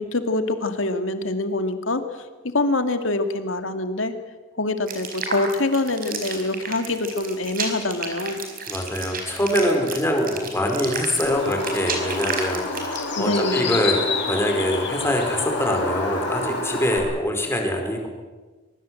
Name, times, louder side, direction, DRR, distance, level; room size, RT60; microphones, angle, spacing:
voice 1, 0.0-2.0 2.5-4.1 4.6-8.4 13.2-13.8, left 2 dB, 75° left, 8 dB, 2.3 m, -25 dB
sound 1, 4.9-13.2, right 5 dB, 45° right, 4.9 m, -32 dB
voice 2, 8.7-18.1, left 1 dB, 15° left, 2 dB, 4.9 m, -24 dB
Bird, 11.2-17.0, left 3 dB, 60° left, 6.8 m, -28 dB
23.5 x 23.0 x 7.8 m, 1.3 s
head